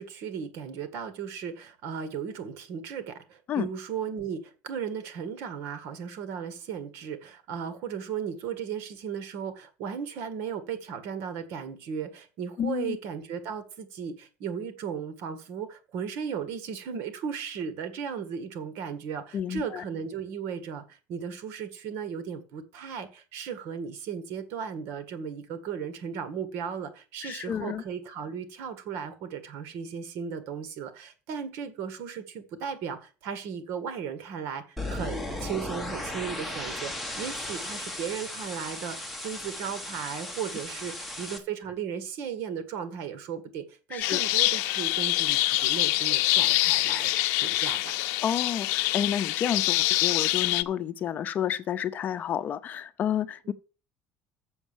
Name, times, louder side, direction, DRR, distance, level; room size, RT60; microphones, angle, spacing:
voice 1, 0.0-43.6 43.9-47.1 47.4-48.1 53.4-53.5, right 7 dB, 65° right, 1.7 m, -36 dB
voice 2, 12.6-13.0 19.3-19.8 27.2-27.8 43.9-44.2 48.2-53.5, left 9 dB, 40° left, 0.6 m, -30 dB
sound 1, 34.8-41.4, left 1 dB, ahead, 1.7 m, -36 dB
sound 2, 44.0-50.6, left 18 dB, 80° left, 0.5 m, -25 dB
7.2 x 6.5 x 7.2 m
cardioid pair, 135°, 4 cm